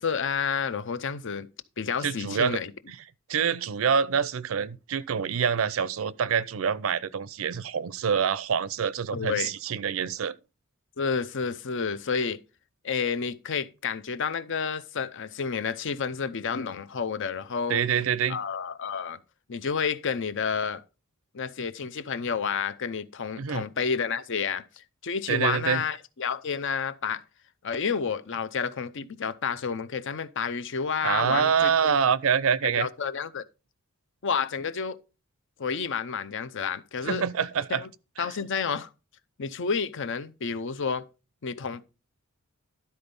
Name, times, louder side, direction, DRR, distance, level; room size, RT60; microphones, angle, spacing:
voice 1, 0.0-1.5 1.8-2.7 9.1-9.5 11.0-12.4 12.8-17.8 18.3-19.2 19.5-20.8 21.3-27.2 27.6-31.9 32.6-33.4 34.2-35.0 35.6-37.2 37.7-37.9 38.2-38.9 39.4-41.1 41.4-41.8, left 6 dB, 60° left, 0.6 m, -30 dB
voice 2, 2.0-2.6 2.9-3.0 3.3-10.3 17.7-18.4 23.4-23.6 25.3-25.8 31.0-32.9 37.0-37.8 38.2-38.3, right 7 dB, 70° right, 0.5 m, -26 dB
12.0 x 4.3 x 5.3 m
head